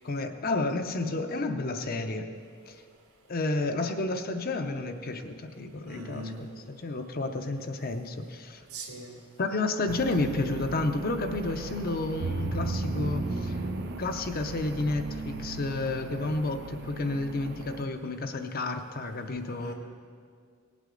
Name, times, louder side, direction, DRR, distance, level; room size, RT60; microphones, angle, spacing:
voice 1, 0.0-2.3 2.7-2.8 3.3-8.6 9.4-13.6 14.0-19.7, left 2 dB, 40° left, 7 dB, 0.6 m, -31 dB
voice 2, 5.8-6.4 8.7-9.1 19.6-19.7, right 1 dB, 85° right, -1 dB, 2.2 m, -40 dB
sound 1, 9.9-17.9, right 2 dB, 50° right, 0.6 m, -35 dB
18.0 x 8.3 x 3.8 m, 2.1 s
head